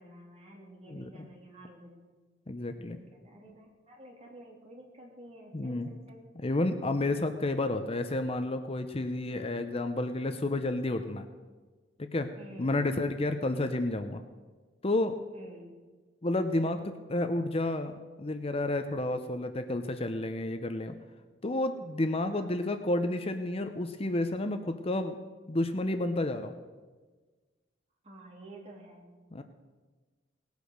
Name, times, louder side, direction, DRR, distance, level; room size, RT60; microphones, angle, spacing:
voice 1, 0.0-2.0 2.8-6.3 12.4-12.8 13.5-13.8 15.3-15.7 22.3-22.5 28.0-29.1, right 1 dB, 35° right, -2 dB, 3.2 m, -51 dB
voice 2, 2.5-3.0 5.5-5.9 6.4-11.2 12.0-12.3 12.6-14.2 14.8-15.1 16.2-20.9 21.4-25.2 25.5-26.5 29.3-29.4, left 2 dB, 30° left, 8 dB, 0.7 m, -31 dB
19.0 x 8.3 x 6.5 m, 1.3 s
head